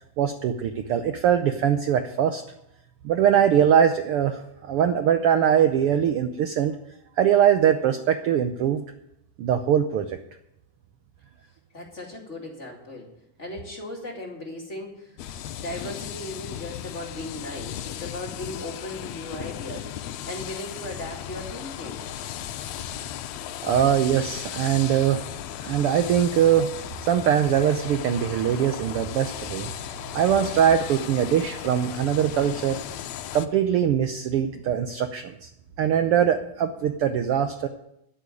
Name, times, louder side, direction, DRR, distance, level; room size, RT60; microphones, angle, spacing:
voice 1, 0.0-2.4 3.0-4.4 4.7-6.7 7.2-8.8 9.4-10.2 23.6-25.2 25.6-26.7 27.1-29.7 30.1-32.8 33.3-35.5 35.8-37.7, right 9 dB, 85° right, 8 dB, 1.2 m, -22 dB
voice 2, 11.7-13.1 13.4-22.1, left 1 dB, 25° left, -1 dB, 2.2 m, -37 dB
sound 1, 15.2-33.5, left 11 dB, 75° left, 1.8 m, -36 dB
13.0 x 6.4 x 9.6 m, 0.81 s
omnidirectional pair, 3.4 m